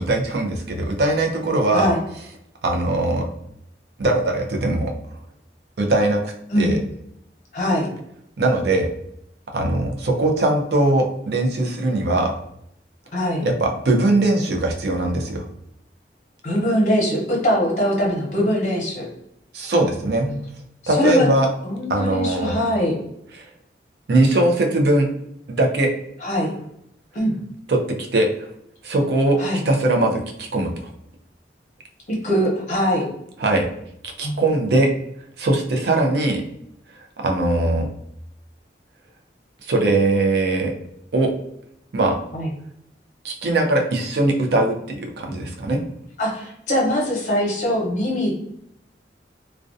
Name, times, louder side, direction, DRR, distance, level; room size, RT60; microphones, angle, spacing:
voice 1, 0.0-1.9 2.6-3.3 4.0-4.9 5.8-6.8 8.4-8.9 9.5-12.3 13.4-15.4 19.5-20.3 20.9-21.5 21.9-22.6 23.3-23.5 24.1-25.1 25.5-25.9 27.7-28.3 28.8-29.4 29.6-30.9 33.4-33.7 34.0-34.9 35.4-36.4 37.2-37.9 39.6-40.7 41.1-41.3 41.9-42.2 43.2-45.8, right 2 dB, 65° right, 2 dB, 0.4 m, -20 dB
voice 2, 7.5-7.9 13.1-13.4 16.4-19.0 20.3-20.4 20.9-21.3 21.6-23.0 26.2-26.5 27.1-27.3 29.4-29.6 32.2-33.1 34.2-34.4 42.3-42.5 46.2-48.3, equal, 40° left, -2 dB, 0.8 m, -22 dB
2.3 x 2.1 x 2.5 m, 0.74 s
head